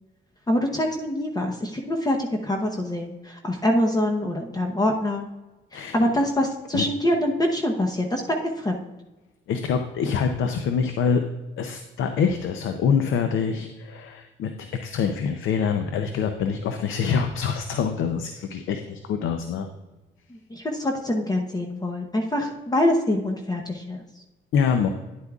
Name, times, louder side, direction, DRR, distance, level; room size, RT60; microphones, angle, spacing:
voice 1, 0.5-5.3 5.7-8.8 20.3-24.0, left 1 dB, 20° left, 2 dB, 0.9 m, -25 dB
voice 2, 9.5-11.2 11.6-14.5 14.8-19.7 24.5-24.9, left 6 dB, 80° left, 7 dB, 0.7 m, -25 dB
10.5 x 8.1 x 2.4 m, 1.1 s
cardioid pair, 90°, 20 cm